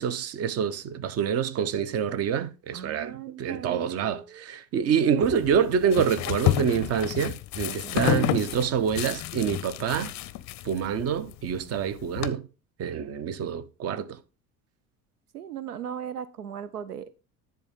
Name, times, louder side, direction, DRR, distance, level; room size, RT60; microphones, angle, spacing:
voice 1, 0.0-10.1 10.6-12.4 12.8-14.2, right 7 dB, 35° right, 0.8 m, -27 dB
voice 2, 2.7-4.4 5.1-5.4 5.8-5.9 7.7-8.0 12.9-13.3 15.3-17.1, right 9 dB, 80° right, 0.6 m, -38 dB
sound 1, 5.2-12.3, left 14 dB, 40° left, 0.6 m, -30 dB
10.5 x 3.5 x 5.4 m
figure-of-eight pair, 65°, 45 cm